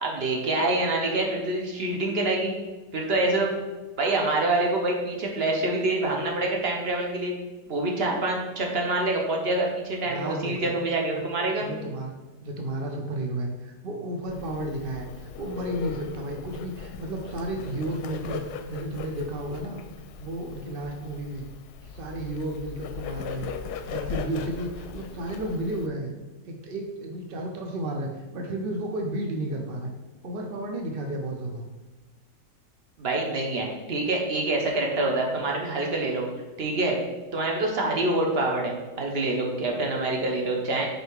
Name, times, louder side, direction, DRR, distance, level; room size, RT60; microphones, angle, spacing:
voice 1, 0.0-2.5 2.9-3.6 4.0-7.3 7.7-11.7 33.0-36.3 36.6-37.0 37.3-40.9, right 2 dB, 45° right, 0 dB, 1.0 m, -26 dB
voice 2, 10.0-10.7 11.1-11.3 11.6-12.1 12.4-18.4 18.7-19.8 20.2-21.5 21.8-23.5 23.9-26.1 26.5-29.9 30.2-31.7, right 1 dB, 70° right, 2 dB, 0.5 m, -32 dB
Bird, 14.3-25.9, left 6 dB, 75° left, 1.0 m, -39 dB
5.3 x 4.2 x 4.7 m, 1.2 s
omnidirectional pair, 1.9 m